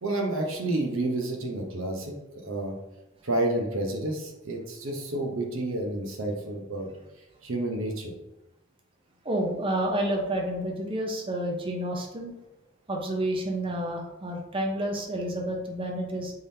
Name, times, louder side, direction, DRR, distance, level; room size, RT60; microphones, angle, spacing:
voice 1, 0.0-2.7 3.2-6.9 7.4-8.1, right 2 dB, 75° right, 1 dB, 0.8 m, -30 dB
voice 2, 9.2-12.3 12.9-16.3, right 1 dB, 25° right, 1 dB, 0.6 m, -29 dB
3.7 x 3.4 x 2.7 m, 1.0 s
head